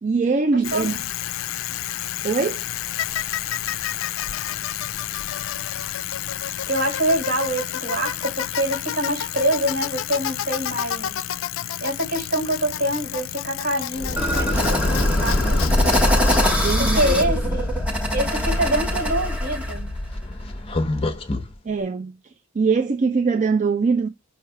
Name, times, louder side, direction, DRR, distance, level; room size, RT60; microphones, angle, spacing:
voice 1, 0.0-1.0 2.2-2.6 16.6-17.2 21.7-22.1 22.5-24.1, right 4 dB, 35° right, 0.4 m, -22 dB
voice 2, 0.5-0.9 6.7-11.2 11.8-15.6 16.8-17.7 18.1-19.9, right 1 dB, 60° right, 4.1 m, -25 dB
Bicycle, 0.6-17.7, left 11 dB, 70° left, 0.4 m, -30 dB
sound 1, 13.9-21.5, left 1 dB, 30° left, 0.8 m, -24 dB
sound 2, 14.2-19.8, equal, 5° right, 1.0 m, -25 dB
5.4 x 3.2 x 5.6 m
head